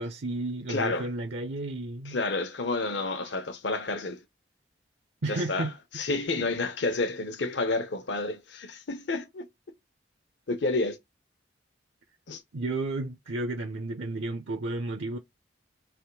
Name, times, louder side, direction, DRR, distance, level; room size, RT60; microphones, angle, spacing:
voice 1, 0.0-2.2 3.2-3.3 5.2-5.7 12.5-15.2, right 2 dB, 70° right, 0.6 m, -32 dB
voice 2, 0.7-1.1 2.1-4.2 5.3-5.7 5.9-9.5 10.5-11.0 12.3-12.4, left 3 dB, 70° left, 0.9 m, -30 dB
3.5 x 2.9 x 4.6 m
head